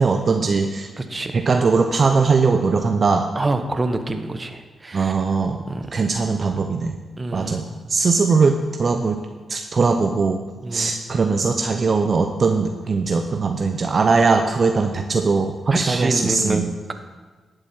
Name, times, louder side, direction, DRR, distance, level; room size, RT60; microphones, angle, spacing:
voice 1, 0.0-0.9 1.3-3.3 4.9-5.6 5.9-7.0 7.3-7.6 7.9-9.2 9.5-10.4 10.7-16.6, right 4 dB, 55° right, 5 dB, 0.7 m, -20 dB
voice 2, 1.0-1.5 3.3-5.2 5.7-5.9 7.2-7.9 10.6-11.0 15.7-16.9, right 2 dB, 30° right, 7 dB, 1.2 m, -27 dB
11.5 x 7.8 x 4.5 m, 1.3 s
supercardioid pair, 45°, 0 cm